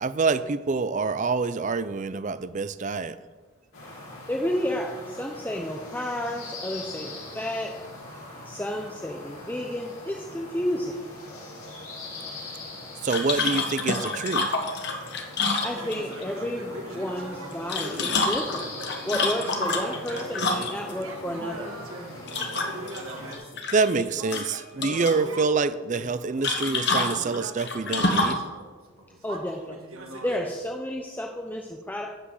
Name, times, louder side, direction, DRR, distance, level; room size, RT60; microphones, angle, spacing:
voice 1, 0.0-3.2 13.0-14.5 23.7-28.5, right 4 dB, 35° right, 0.4 m, -26 dB
sound 1, 3.7-23.3, left 2 dB, 90° left, 4.4 m, -42 dB
voice 2, 4.3-7.8 8.4-11.0 15.6-18.7 19.1-21.7 29.2-29.8 30.2-32.1, equal, 10° left, 0.7 m, -31 dB
sound 2, 13.1-16.2 17.5-20.9 22.3-23.0 23.3-24.0 24.3-25.2 26.4-28.4, left 3 dB, 55° left, 1.5 m, -27 dB
sound 3, 15.8-25.5 25.9-30.7, right 1 dB, 90° right, 1.9 m, -40 dB
12.0 x 6.0 x 7.7 m
head